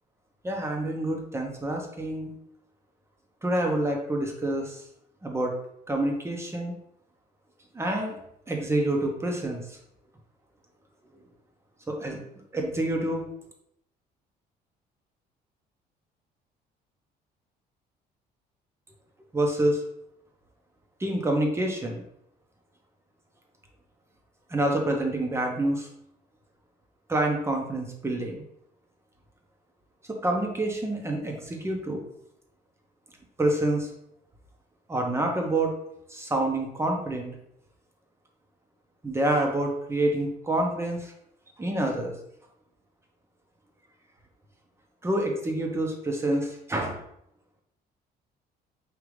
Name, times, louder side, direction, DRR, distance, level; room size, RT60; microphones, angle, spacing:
voice 1, 0.4-2.3 3.4-4.8 5.2-5.5 5.9-6.7 7.7-8.2 8.5-9.6 11.9-12.2 12.5-13.3 19.3-19.8 21.0-22.0 24.5-25.9 27.1-28.4 30.1-32.0 33.4-33.9 34.9-35.8 36.1-37.3 39.0-41.0 41.6-42.1 45.0-47.0, right 1 dB, 15° right, 1 dB, 0.9 m, -27 dB
5.1 x 2.8 x 3.2 m, 0.75 s
cardioid pair, 110°, 17 cm